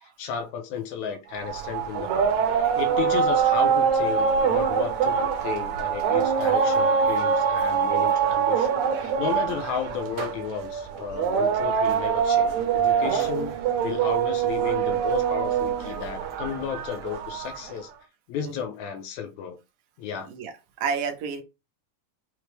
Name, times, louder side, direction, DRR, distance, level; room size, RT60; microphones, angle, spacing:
voice 1, 0.2-13.5 13.8-17.9 18.3-19.6 20.0-20.3, left 7 dB, 75° left, 1.8 m, -33 dB
sound 1, 1.4-17.7, right 7 dB, 75° right, 1.9 m, -24 dB
voice 2, 20.3-21.4, right 6 dB, 90° right, 2.3 m, -31 dB
5.9 x 2.0 x 3.2 m
omnidirectional pair, 3.6 m